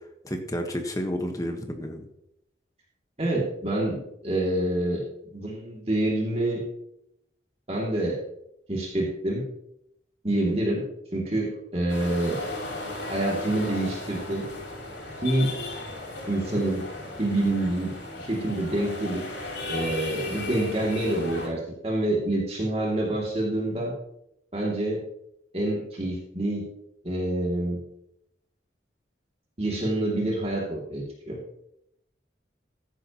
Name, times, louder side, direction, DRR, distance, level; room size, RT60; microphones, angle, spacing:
voice 1, 0.2-2.1, equal, 20° left, 4 dB, 1.3 m, -31 dB
voice 2, 3.2-4.0 4.2-5.0 5.3-6.6 7.7-8.2 8.7-9.4 10.2-10.8 11.1-12.4 13.1-14.5 15.2-15.5 16.3-16.8 17.2-19.2 19.7-23.9 24.5-25.0 25.5-26.7 27.0-27.8 29.6-31.4, right 1 dB, 35° right, -3 dB, 2.6 m, -27 dB
sound 1, 11.9-21.5, left 2 dB, 85° left, 5.4 m, -36 dB
14.5 x 10.5 x 3.0 m, 0.77 s
head